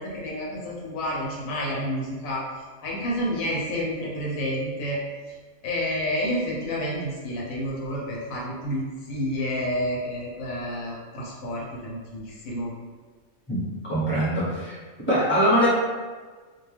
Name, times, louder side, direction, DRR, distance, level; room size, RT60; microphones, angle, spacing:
voice 1, 0.0-2.4 2.8-5.0 5.6-12.7, equal, 80° left, -4 dB, 1.1 m, -29 dB
voice 2, 13.5-14.7 15.1-15.7, equal, 10° left, -9 dB, 0.9 m, -22 dB
2.4 x 2.2 x 3.2 m, 1.4 s
omnidirectional pair, 1.4 m